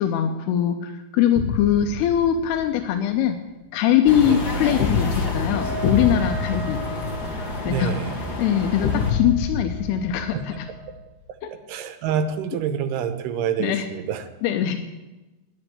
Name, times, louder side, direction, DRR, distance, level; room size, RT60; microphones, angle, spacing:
voice 1, 0.0-3.4 3.7-6.8 7.6-7.9 8.4-10.7 11.4-11.5 13.6-13.8 14.4-14.8, left 10 dB, 85° left, 6 dB, 2.8 m, -22 dB
sound 1, 1.4-2.7 4.8-7.8 8.8-11.0, left 6 dB, 70° left, 2.0 m, -27 dB
sound 2, 4.0-9.1, left 1 dB, 40° left, 1.6 m, -30 dB
Wind instrument woodwind instrument, 5.4-11.1, right 2 dB, 55° left, 3.7 m, -38 dB
voice 2, 7.6-8.1 10.3-10.4 11.5-14.3, right 7 dB, 85° right, 9 dB, 3.0 m, -27 dB
10.5 x 9.8 x 9.9 m, 1.1 s
omnidirectional pair, 4.6 m